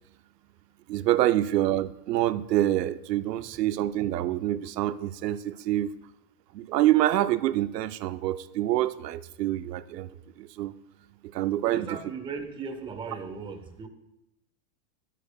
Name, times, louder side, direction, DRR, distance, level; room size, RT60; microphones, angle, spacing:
voice 1, 0.9-5.9 6.5-10.1 10.4-10.7 11.3-11.9, right 14 dB, 90° right, 14 dB, 0.6 m, -26 dB
voice 2, 11.6-13.9, right 5 dB, 10° right, 6 dB, 0.6 m, -37 dB
12.0 x 9.2 x 2.2 m, 0.93 s
supercardioid pair, 130°, 47 cm